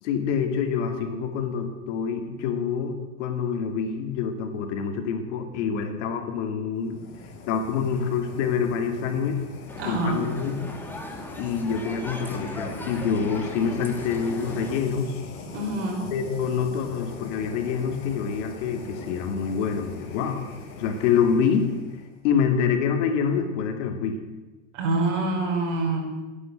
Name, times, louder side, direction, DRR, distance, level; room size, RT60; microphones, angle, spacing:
voice 1, 0.0-7.0 7.5-9.4 9.9-10.6 11.4-15.1 16.1-20.4 20.8-21.7 22.2-24.2, left 6 dB, 70° left, 5 dB, 2.6 m, -26 dB
sound 1, 6.8-22.2, left 2 dB, 35° left, 3.7 m, -41 dB
sound 2, 9.7-14.8, left 1 dB, 5° left, 1.8 m, -39 dB
voice 2, 9.8-10.2 15.5-16.0 24.7-26.0, right 2 dB, 75° right, 1 dB, 4.8 m, -26 dB
18.5 x 9.9 x 7.6 m, 1.3 s
supercardioid pair, 145°, 36 cm